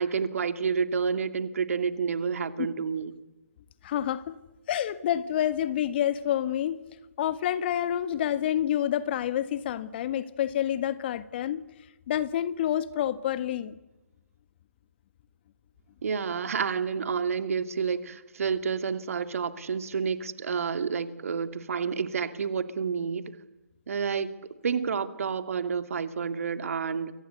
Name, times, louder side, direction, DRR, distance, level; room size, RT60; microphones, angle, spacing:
voice 1, 0.0-3.2 16.0-23.4 23.9-24.3 24.6-27.1, right 6 dB, 60° right, 2.5 m, -29 dB
voice 2, 3.8-4.4 4.7-6.8 7.2-11.6 12.1-13.8, left 11 dB, 40° left, 1.7 m, -28 dB
29.0 x 24.5 x 8.2 m
figure-of-eight pair, 140°, 9 cm